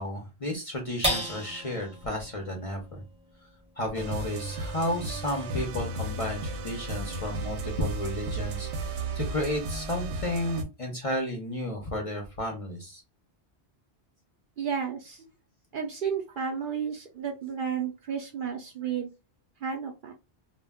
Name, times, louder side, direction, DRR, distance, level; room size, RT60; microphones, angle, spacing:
voice 1, 0.0-3.0 3.8-13.0, left 1 dB, 40° left, 1 dB, 0.5 m, -32 dB
sound 1, 1.0-7.7 8.2-8.3 8.7-9.2, equal, 5° right, 0.7 m, -37 dB
sound 2, 3.9-10.6, right 2 dB, 80° right, 0.9 m, -34 dB
voice 2, 14.6-15.2 15.7-19.1 19.6-20.1, right 7 dB, 60° right, 3 dB, 0.6 m, -32 dB
2.2 x 2.1 x 3.4 m, 0.26 s
omnidirectional pair, 1.1 m